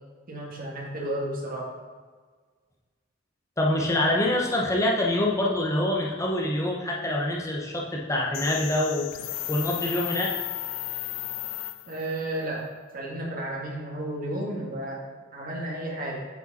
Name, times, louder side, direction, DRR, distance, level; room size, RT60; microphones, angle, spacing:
voice 1, 0.3-1.7 11.9-12.7 12.9-15.0 15.3-16.2, right 1 dB, 45° right, -3 dB, 1.8 m, -32 dB
voice 2, 3.6-9.2 9.5-10.3, left 1 dB, 15° left, -2 dB, 0.7 m, -25 dB
sound 1, 8.3-12.2, left 16 dB, 70° left, 0.3 m, -34 dB
8.0 x 5.0 x 4.1 m, 1.5 s
head